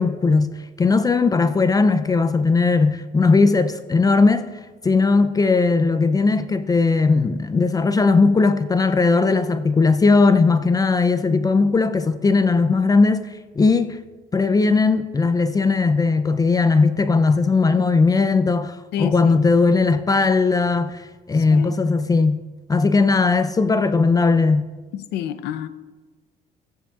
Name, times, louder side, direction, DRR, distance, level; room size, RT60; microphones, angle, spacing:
voice 1, 0.0-14.0 14.3-22.4 22.7-24.7, left 4 dB, 20° left, 0.4 m, -18 dB
voice 2, 18.9-19.4 21.3-21.8 24.9-25.7, left 10 dB, 80° left, 0.6 m, -29 dB
14.5 x 9.9 x 2.4 m
cardioid pair, 110°, 17 cm